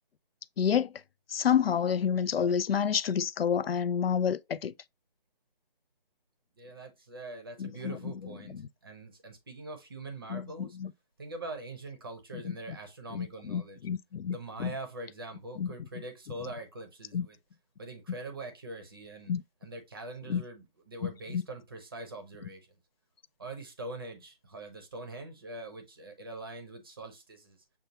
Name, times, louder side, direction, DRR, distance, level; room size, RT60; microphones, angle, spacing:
voice 1, 0.6-0.9 1.3-4.7 7.6-8.1 8.5-8.6 10.3-10.9 12.3-12.6 13.1-14.7 15.6-15.7 17.1-17.3 19.3-19.4 20.3-20.4 21.0-21.4, left 8 dB, 80° left, 0.5 m, -29 dB
voice 2, 6.6-10.8 11.2-13.9 14.3-17.4 17.8-19.3 19.6-22.7 23.4-27.6, right 2 dB, 25° right, 0.7 m, -43 dB
6.8 x 2.3 x 2.7 m
figure-of-eight pair, 160°, 29 cm